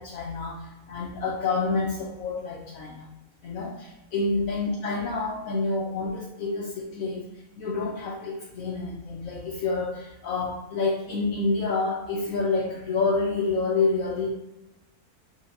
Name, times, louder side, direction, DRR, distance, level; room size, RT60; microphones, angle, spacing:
voice 1, 0.0-3.1 3.4-7.3 7.6-14.3, left 3 dB, 70° left, -3 dB, 1.1 m, -28 dB
6.7 x 2.8 x 2.6 m, 0.92 s
omnidirectional pair, 1.6 m